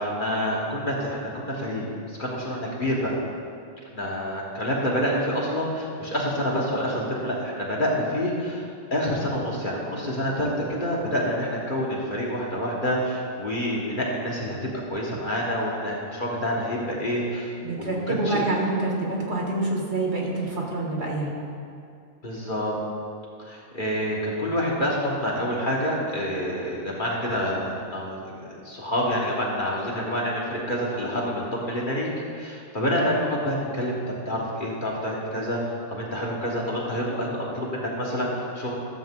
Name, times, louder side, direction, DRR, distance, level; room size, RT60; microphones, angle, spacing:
voice 1, 0.0-3.2 3.9-8.6 8.9-18.4 22.2-22.7 23.4-34.0 34.2-38.7, equal, 40° left, -4 dB, 1.5 m, -27 dB
voice 2, 17.6-21.3, right 2 dB, 50° right, -2 dB, 1.7 m, -26 dB
13.0 x 7.1 x 3.7 m, 2.3 s
omnidirectional pair, 1.4 m